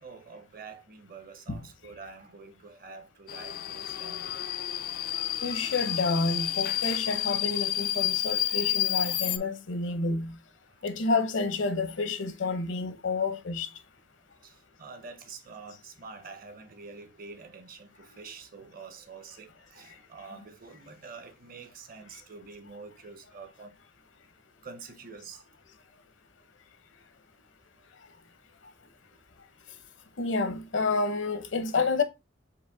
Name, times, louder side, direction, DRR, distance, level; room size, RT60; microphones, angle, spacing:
voice 1, 0.0-4.3 14.4-23.7 24.6-25.4, right 4 dB, 45° right, 0.7 m, -47 dB
Subway metro underground, 3.3-9.4, left 13 dB, 50° left, 0.3 m, -30 dB
voice 2, 5.4-10.4 10.8-13.7 30.2-32.0, left 3 dB, 70° left, 0.7 m, -29 dB
4.7 x 2.6 x 3.8 m
head